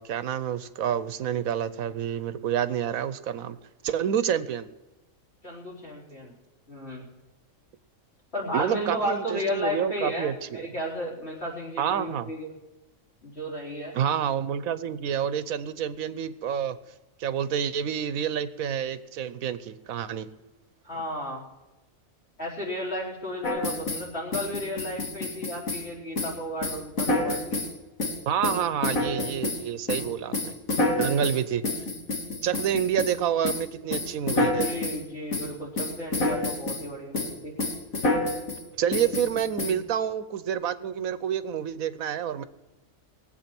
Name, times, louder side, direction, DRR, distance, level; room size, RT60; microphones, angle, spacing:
voice 1, 0.0-3.6 3.8-4.7 8.5-10.7 11.8-12.3 13.9-16.8 17.2-20.3 28.3-30.6 31.0-31.7 32.4-34.7 38.8-42.4, right 9 dB, 85° right, 13 dB, 1.2 m, -28 dB
voice 2, 5.4-6.3 6.7-7.1 8.3-12.5 13.2-14.0 20.8-21.4 22.4-27.6 34.6-37.5, equal, 50° left, -3 dB, 4.3 m, -33 dB
sound 1, 23.4-24.1 24.3-25.9 26.2-26.4 26.6-27.7 28.0-29.6 29.9-33.1 33.4-33.7 33.9-35.0 35.3-35.5 35.8-36.8 37.1-37.3 37.6-38.6 38.9-39.7, left 2 dB, 75° left, 2.4 m, -28 dB
20.5 x 8.3 x 6.0 m, 1.1 s
omnidirectional pair, 1.4 m